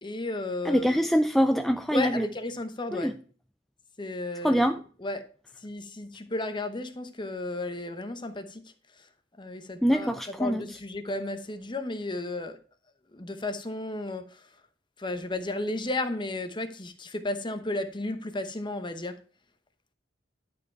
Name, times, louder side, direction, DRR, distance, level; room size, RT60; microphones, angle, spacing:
voice 1, 0.0-1.0 1.9-3.1 4.0-4.7 5.0-5.3 5.6-8.6 9.0-9.1 9.4-10.1 10.4-12.6 13.1-14.5 15.0-19.2, left 2 dB, 25° left, 0.9 m, -33 dB
voice 2, 0.6-2.3 2.9-3.1 4.4-4.8 9.8-10.6, equal, ahead, 0.4 m, -24 dB
11.0 x 5.2 x 4.5 m
head